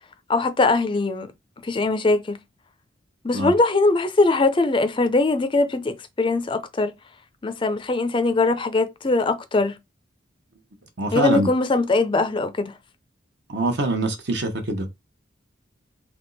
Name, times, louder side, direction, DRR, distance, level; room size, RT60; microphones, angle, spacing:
voice 1, 0.3-1.3 1.6-2.4 3.2-6.9 7.4-9.8 11.1-12.7, left 3 dB, 25° left, 0.4 m, -21 dB
voice 2, 11.0-11.5 13.5-14.9, right 2 dB, 60° right, 1.0 m, -24 dB
3.5 x 2.9 x 4.0 m
head